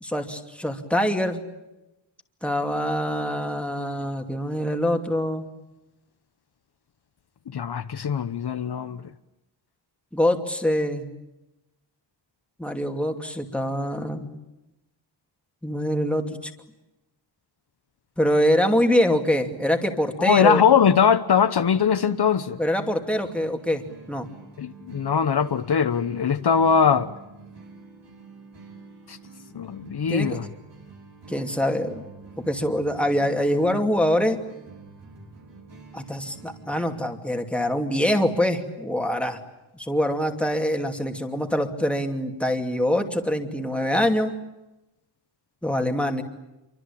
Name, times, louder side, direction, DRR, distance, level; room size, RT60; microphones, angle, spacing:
voice 1, 0.0-1.4 2.4-5.5 10.1-11.1 12.6-14.3 15.6-16.5 18.2-20.6 22.6-24.3 30.1-30.4 31.3-32.0 32.4-34.4 35.9-39.4 39.8-44.3 45.6-46.2, equal, 5° left, 2.6 m, -24 dB
voice 2, 7.5-9.0 20.2-22.6 24.6-27.1 29.1-29.2 29.5-30.5, left 7 dB, 60° left, 1.1 m, -21 dB
sound 1, 23.1-37.0, right 4 dB, 70° right, 6.4 m, -47 dB
28.0 x 24.5 x 8.7 m
wide cardioid pair, 165°, 43 cm